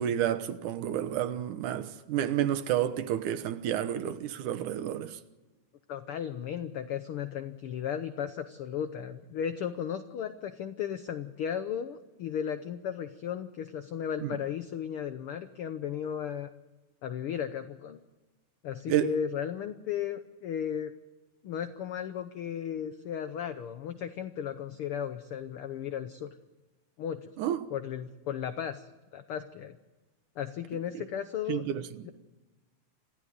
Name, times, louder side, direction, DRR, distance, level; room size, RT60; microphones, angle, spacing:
voice 1, 0.0-5.2 14.2-14.3 18.9-19.1 27.4-27.6 31.5-31.8, right 11 dB, 85° right, 2.6 m, -30 dB
voice 2, 5.9-16.5 17.0-18.0 18.6-20.9 21.4-26.3 27.0-27.3 27.7-29.8 30.4-32.1, left 8 dB, 70° left, 1.4 m, -35 dB
27.0 x 16.0 x 9.5 m
omnidirectional pair, 3.4 m